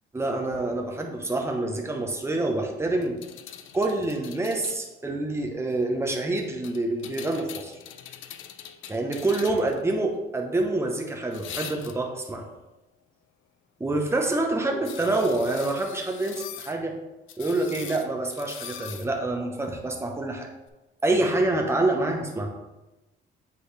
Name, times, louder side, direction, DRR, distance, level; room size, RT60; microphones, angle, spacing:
voice 1, 0.1-3.2 3.7-7.7 8.9-12.4 13.8-16.9 17.4-20.5 21.0-22.5, right 2 dB, 15° right, 2 dB, 1.0 m, -27 dB
sound 1, 3.0-4.8 6.6-9.8 11.3-12.2 14.8-16.8 17.3-19.1 20.7-20.8, left 10 dB, 80° left, 0.5 m, -42 dB
7.9 x 4.2 x 3.3 m, 1.0 s
cardioid pair, 90°, 20 cm